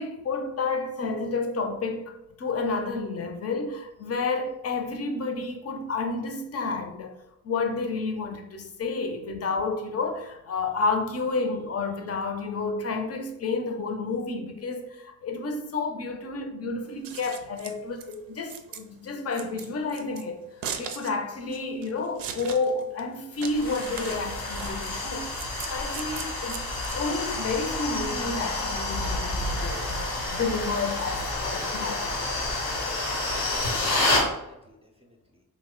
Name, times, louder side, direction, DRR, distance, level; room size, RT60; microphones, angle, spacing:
voice 1, 0.0-7.2 7.4-25.3 25.7-32.1, left 3 dB, 40° left, 0.6 m, -30 dB
Scissors, 16.9-27.5, right 7 dB, 70° right, 0.5 m, -40 dB
sound 1, 23.4-34.3, left 2 dB, 85° left, 1.0 m, -29 dB
voice 2, 33.2-35.4, left 1 dB, 15° right, 0.5 m, -50 dB
2.9 x 2.2 x 3.7 m
cardioid pair, 65°, 37 cm